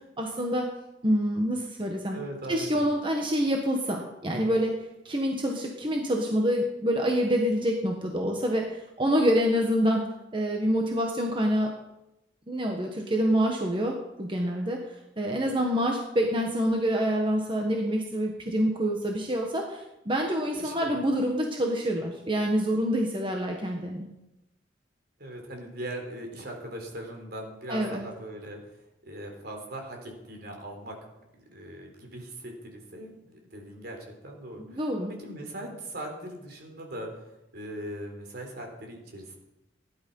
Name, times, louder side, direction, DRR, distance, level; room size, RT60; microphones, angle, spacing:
voice 1, 0.2-0.7 1.0-2.2 2.5-4.7 5.0-10.0 10.3-11.8 12.5-24.1 27.7-28.0 34.7-35.1, equal, 30° right, 1 dB, 1.4 m, -26 dB
voice 2, 2.1-2.8 20.6-20.9 25.2-28.6 29.0-30.9 31.3-34.0 34.2-34.9 35.2-37.3 37.5-39.4, right 1 dB, 60° right, 2 dB, 3.9 m, -40 dB
16.5 x 11.0 x 5.5 m, 0.94 s
head